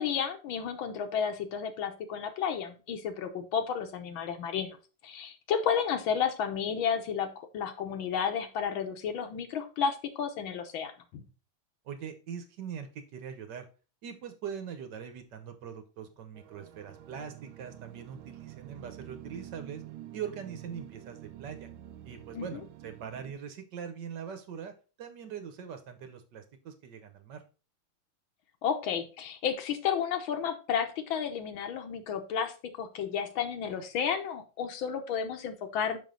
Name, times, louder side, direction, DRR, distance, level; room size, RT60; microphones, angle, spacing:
voice 1, 0.0-4.8 5.0-11.2 22.3-22.6 28.6-36.0, left 7 dB, 80° left, 7 dB, 1.7 m, -32 dB
voice 2, 11.8-13.7 14.0-19.8 20.1-21.7 22.0-24.7 25.0-27.4, right 7 dB, 65° right, 7 dB, 1.4 m, -42 dB
sound 1, 16.3-23.3, right 13 dB, 85° right, 1.4 m, -48 dB
6.2 x 5.3 x 3.8 m, 0.34 s
omnidirectional pair, 2.2 m